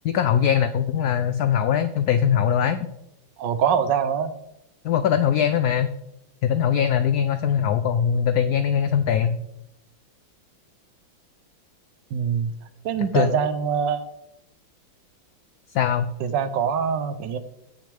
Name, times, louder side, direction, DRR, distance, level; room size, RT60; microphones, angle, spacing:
voice 1, 0.0-2.9 4.8-5.9 6.4-9.4 13.1-13.3 15.7-16.1, left 8 dB, 80° left, 11 dB, 0.8 m, -21 dB
voice 2, 3.4-4.3 12.1-12.5 12.8-14.0 16.2-17.4, right 7 dB, 70° right, 12 dB, 1.3 m, -23 dB
16.0 x 6.5 x 3.4 m, 0.85 s
omnidirectional pair, 2.1 m